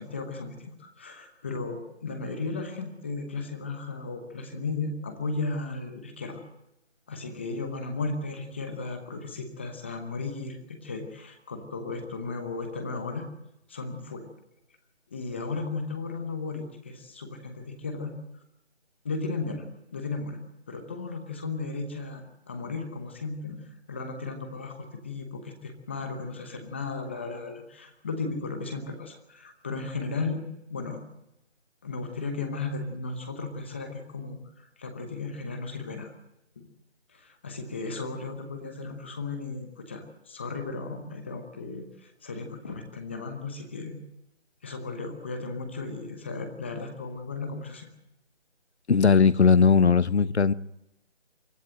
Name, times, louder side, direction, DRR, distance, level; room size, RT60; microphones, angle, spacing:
voice 1, 0.0-6.4 7.1-13.3 13.7-14.3 15.1-18.1 19.0-19.7 19.9-20.4 20.7-30.4 30.7-31.0 31.8-36.1 36.6-36.7 37.1-44.0 44.6-47.9, left 3 dB, 10° left, 5 dB, 0.9 m, -35 dB
voice 2, 48.9-50.5, left 5 dB, 80° left, 17 dB, 1.0 m, -19 dB
24.5 x 14.0 x 7.7 m, 0.87 s
figure-of-eight pair, 165°, 33 cm